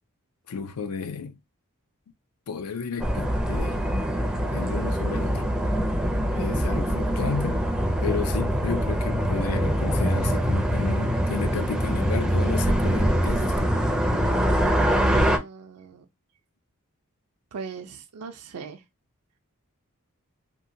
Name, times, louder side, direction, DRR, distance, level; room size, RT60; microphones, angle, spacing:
voice 1, 0.5-1.4 2.5-3.8 4.5-5.4 6.2-7.6 8.0-13.7, left 5 dB, 85° left, 0.5 m, -32 dB
sound 1, 3.0-15.4, equal, 5° right, 0.4 m, -24 dB
voice 2, 15.0-16.0 17.5-18.8, right 5 dB, 75° right, 0.5 m, -39 dB
2.9 x 2.2 x 2.6 m
head